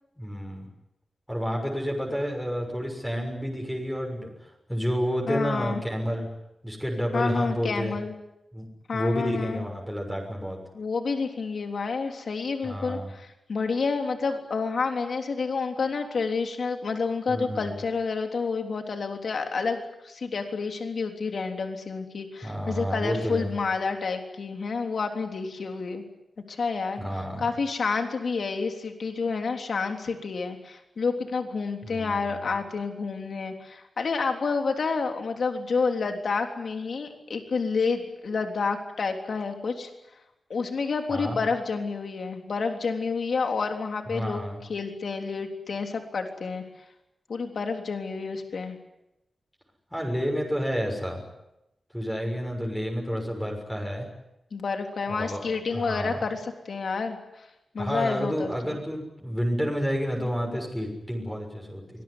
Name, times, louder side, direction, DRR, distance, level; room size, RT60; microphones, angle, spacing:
voice 1, 0.2-0.7 1.3-6.3 6.6-7.9 8.5-8.6 8.9-10.6 12.6-13.1 17.3-17.8 22.4-23.5 27.0-27.5 31.8-32.5 41.1-41.4 44.0-44.6 49.9-51.2 51.9-54.1 55.1-56.2 57.8-62.0, equal, 5° left, 0 dB, 6.6 m, -30 dB
voice 2, 5.3-5.8 7.1-8.1 8.9-9.7 10.7-26.0 26.5-27.0 27.4-39.9 40.5-44.4 44.7-46.6 47.3-48.8 54.5-57.5 57.7-58.7, left 4 dB, 70° left, 4 dB, 3.5 m, -29 dB
25.0 x 20.5 x 9.9 m, 0.90 s
wide cardioid pair, 110°, 0 cm